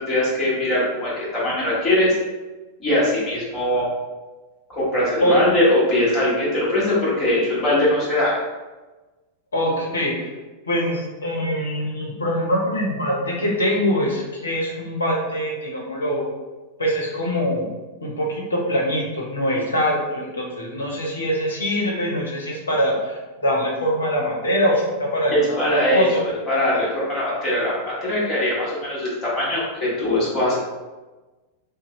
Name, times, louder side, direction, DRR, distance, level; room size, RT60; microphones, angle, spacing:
voice 1, 0.0-2.1 2.8-3.8 4.7-8.3 25.3-30.6, left 1 dB, 25° left, -8 dB, 1.3 m, -21 dB
voice 2, 9.5-10.3 10.6-16.3 16.8-17.7 18.0-26.2, equal, 75° left, -2 dB, 0.7 m, -23 dB
2.6 x 2.0 x 3.0 m, 1.2 s
figure-of-eight pair, 90°, 0 cm